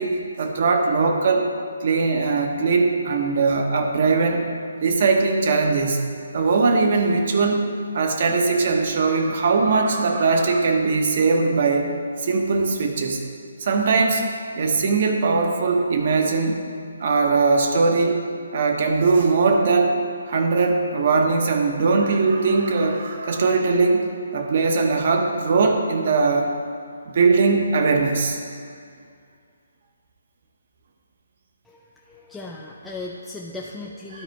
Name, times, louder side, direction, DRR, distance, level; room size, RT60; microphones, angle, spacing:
voice 1, 0.0-1.5 1.8-4.4 4.8-6.0 6.3-7.6 7.9-11.9 12.2-13.2 13.6-14.2 14.5-16.6 17.0-18.2 18.5-20.0 20.3-24.1 24.3-26.5 27.1-28.4 34.1-34.2, right 4 dB, 50° right, 3 dB, 1.0 m, -20 dB
voice 2, 31.6-34.2, left 2 dB, 5° left, -3 dB, 0.4 m, -37 dB
12.0 x 4.0 x 4.7 m, 2.3 s
hypercardioid pair, 160°, 0 cm